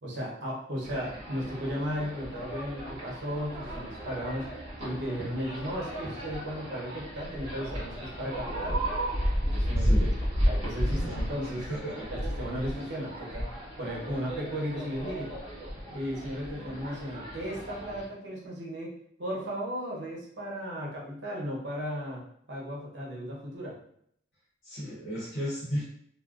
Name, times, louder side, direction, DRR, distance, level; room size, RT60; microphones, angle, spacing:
voice 1, 0.0-4.5 4.8-8.8 9.4-10.1 10.5-11.7 12.1-13.4 13.8-15.3 15.9-18.9 19.2-22.2 22.5-23.8, equal, 65° right, -4 dB, 0.8 m, -35 dB
sound 1, 0.8-18.1, equal, 30° right, 0.8 m, -33 dB
voice 2, 9.8-10.1 10.9-11.2 11.7-12.1 24.6-25.8, equal, 70° left, -7 dB, 0.8 m, -34 dB
2.5 x 2.0 x 2.3 m, 0.68 s
head